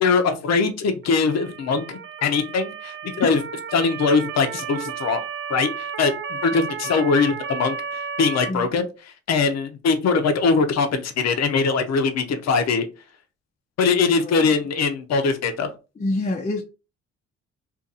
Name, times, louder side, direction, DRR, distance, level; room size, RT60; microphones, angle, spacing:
voice 1, 0.0-3.4 3.7-5.2 5.5-8.9 9.3-12.8 13.8-15.7, left 4 dB, 60° left, 0.8 m, -22 dB
Motor vehicle (road) / Siren, 1.0-8.5, right 6 dB, 40° right, 0.4 m, -33 dB
voice 2, 14.1-14.5 16.0-16.6, left 2 dB, 25° left, 0.6 m, -27 dB
2.8 x 2.5 x 3.8 m
cardioid pair, 90°, 30 cm